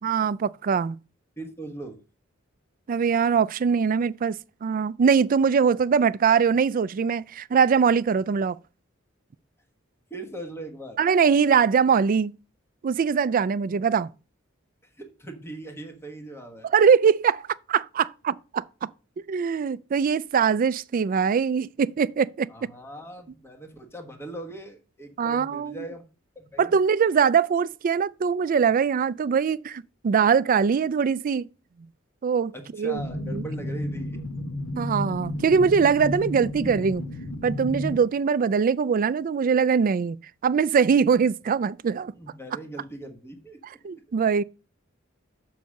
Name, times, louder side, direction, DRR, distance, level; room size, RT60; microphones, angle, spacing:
voice 1, 0.0-1.0 2.9-8.6 11.0-12.3 12.8-14.1 16.7-17.4 17.7-18.9 19.3-22.5 25.2-25.8 26.6-31.5 32.2-32.5 32.8-33.0 33.3-33.4 34.8-37.0 37.4-40.2 40.4-42.1 43.8-44.4, right 6 dB, 45° right, 0.3 m, -22 dB
voice 2, 1.4-2.0 10.1-11.0 14.8-16.7 22.5-26.0 26.3-26.8 32.5-34.2 42.1-43.6 43.9-44.0, right 2 dB, 10° left, 1.2 m, -40 dB
sound 1, 32.9-38.0, left 1 dB, 70° left, 1.4 m, -32 dB
7.0 x 4.7 x 6.3 m
head